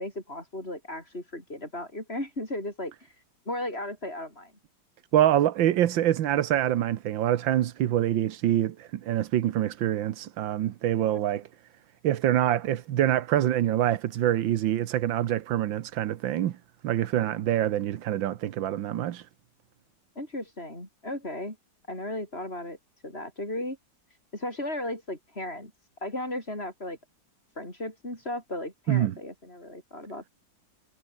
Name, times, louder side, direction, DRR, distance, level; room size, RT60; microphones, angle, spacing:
voice 1, 0.0-4.5 20.2-21.6 21.9-22.8 23.0-23.8 24.3-25.7 26.0-27.0 27.6-30.3, left 1 dB, 30° left, 8.0 m, -35 dB
voice 2, 5.1-11.4 12.0-16.6 16.8-19.3 28.9-29.2, right 12 dB, 90° right, 1.7 m, -25 dB
omnidirectional pair, 2.0 m